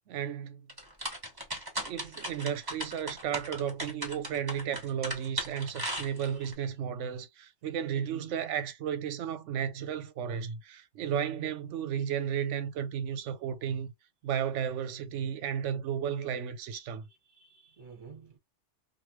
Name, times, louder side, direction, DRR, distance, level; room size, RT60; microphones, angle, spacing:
voice 1, 0.1-0.7 1.8-13.9 14.2-17.0, right 8 dB, 75° right, 0.9 m, -33 dB
sound 1, 0.7-6.5, right 1 dB, 20° right, 1.0 m, -37 dB
voice 2, 16.9-18.4, right 5 dB, 45° right, 1.2 m, -53 dB
3.2 x 2.4 x 2.9 m
omnidirectional pair, 1.3 m